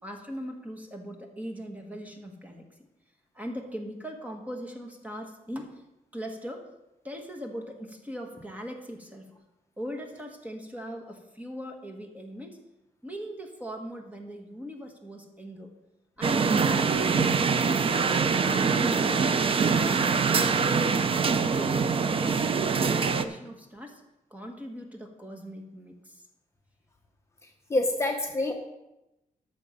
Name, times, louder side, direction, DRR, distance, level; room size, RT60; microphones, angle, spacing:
voice 1, 0.0-2.6 3.3-5.8 6.1-6.6 7.0-9.3 9.8-12.6 13.0-15.7 16.2-17.5 17.9-19.4 19.7-21.0 21.4-24.0 24.3-26.2, equal, 10° right, 3 dB, 1.3 m, -40 dB
sound 1, 16.2-23.2, right 5 dB, 40° right, 0.6 m, -24 dB
voice 2, 27.4-28.5, left 2 dB, 20° left, 2 dB, 1.1 m, -27 dB
14.0 x 6.4 x 5.5 m, 0.93 s
wide cardioid pair, 170°, 14 cm